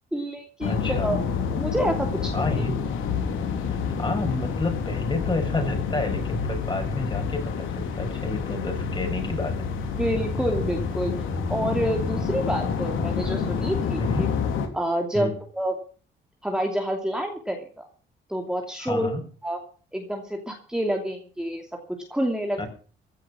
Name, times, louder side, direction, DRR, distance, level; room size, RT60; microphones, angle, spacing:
voice 1, 0.1-1.2 1.5-2.5 9.9-11.1 11.5-14.3 14.7-15.7 16.4-17.8 18.3-19.1 19.4-19.6 19.9-21.6 22.1-22.6, equal, 5° right, 2 dB, 2.8 m, -28 dB
sound 1, 0.6-14.7, left 6 dB, 85° left, 3.4 m, -28 dB
voice 2, 0.7-1.1 2.3-2.8 4.0-9.6 14.0-14.3 15.1-15.4 18.8-19.2 22.6-22.7, left 2 dB, 25° left, 5 dB, 6.2 m, -29 dB
16.0 x 9.8 x 6.3 m, 0.41 s
cardioid pair, 90°, 20 cm